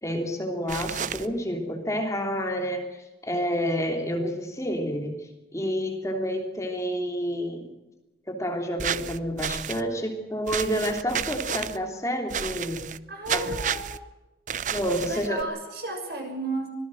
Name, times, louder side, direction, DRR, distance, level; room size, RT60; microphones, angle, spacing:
voice 1, 0.0-7.7 8.3-12.9 13.3-13.5 14.7-15.5, equal, 15° left, 3 dB, 3.1 m, -29 dB
sound 1, 0.7-1.3 8.8-9.8 10.5-11.8 12.3-13.0 13.3-14.0 14.5-15.4, right 7 dB, 45° right, 0.7 m, -31 dB
voice 2, 13.1-14.0 15.0-16.7, right 2 dB, 60° right, 4 dB, 6.7 m, -33 dB
25.0 x 19.0 x 6.3 m, 1.0 s
head